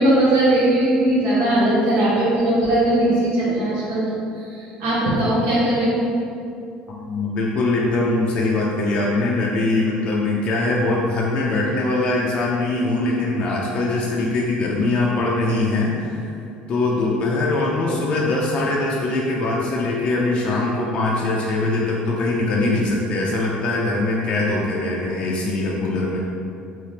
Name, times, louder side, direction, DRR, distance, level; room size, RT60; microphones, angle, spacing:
voice 1, 0.0-6.0, right 1 dB, 70° right, -8 dB, 1.1 m, -19 dB
voice 2, 6.9-16.2 16.7-26.2, left 2 dB, 35° left, -3 dB, 0.4 m, -22 dB
3.3 x 2.8 x 2.8 m, 2.5 s
cardioid pair, 165°, 3 cm